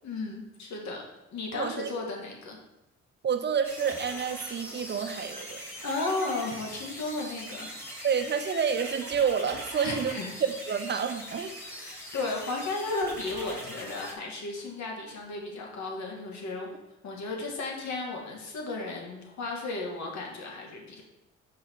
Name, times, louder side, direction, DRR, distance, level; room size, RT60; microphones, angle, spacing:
voice 1, 0.0-1.0 1.3-2.6 5.8-7.7 9.8-10.3 11.6-16.8 17.0-21.0, left 3 dB, 65° left, 0 dB, 1.9 m, -34 dB
voice 2, 1.5-1.9 3.2-5.6 8.0-11.5, right 7 dB, 35° right, 8 dB, 0.7 m, -29 dB
sound 1, 3.6-14.1, equal, 10° left, 2.4 m, -41 dB
6.8 x 5.0 x 4.6 m, 0.96 s
cardioid pair, 90°, 30 cm